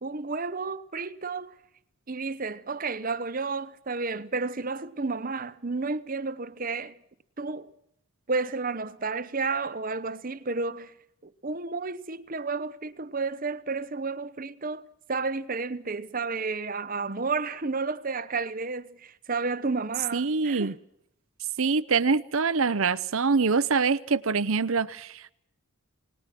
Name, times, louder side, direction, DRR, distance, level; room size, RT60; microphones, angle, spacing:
voice 1, 0.0-1.6 2.1-7.0 7.4-7.7 8.3-10.9 11.2-14.8 15.1-20.8, right 4 dB, 40° right, 0.9 m, -31 dB
voice 2, 20.1-20.7 21.6-25.3, right 4 dB, 65° right, 0.8 m, -25 dB
27.5 x 19.5 x 6.0 m
head